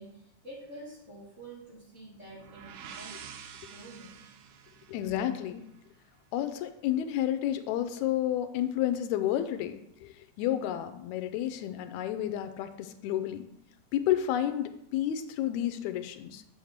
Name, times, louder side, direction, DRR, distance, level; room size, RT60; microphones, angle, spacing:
voice 1, 0.0-3.2 3.7-4.1, right 1 dB, 30° right, -5 dB, 2.1 m, -47 dB
sound 1, 2.1-6.0, right 8 dB, 75° right, 1.7 m, -48 dB
voice 2, 4.9-5.6 6.3-13.5 13.9-16.4, left 11 dB, 80° left, 9 dB, 1.9 m, -31 dB
7.7 x 3.5 x 6.5 m, 0.80 s
omnidirectional pair, 3.4 m